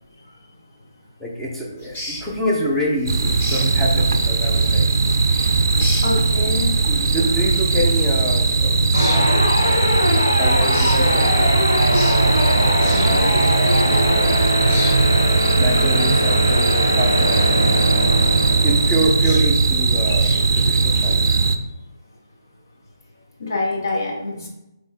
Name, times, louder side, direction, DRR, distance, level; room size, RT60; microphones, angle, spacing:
voice 1, 1.2-4.9 6.9-8.9 9.2-11.6 12.3-13.6 13.9-14.5 15.2-18.2 18.6-21.3, equal, 5° left, -5 dB, 0.6 m, -27 dB
sound 1, 1.8-21.2, left 1 dB, 25° left, 1.4 m, -37 dB
sound 2, 3.1-21.6, right 4 dB, 60° right, 0.4 m, -18 dB
voice 2, 6.0-6.7 21.3-21.4 23.4-24.5, left 2 dB, 60° left, -1 dB, 1.0 m, -26 dB
sound 3, 8.9-19.3, left 1 dB, 85° left, 0.8 m, -21 dB
4.0 x 3.0 x 3.6 m, 0.89 s
hypercardioid pair, 160°, 2 cm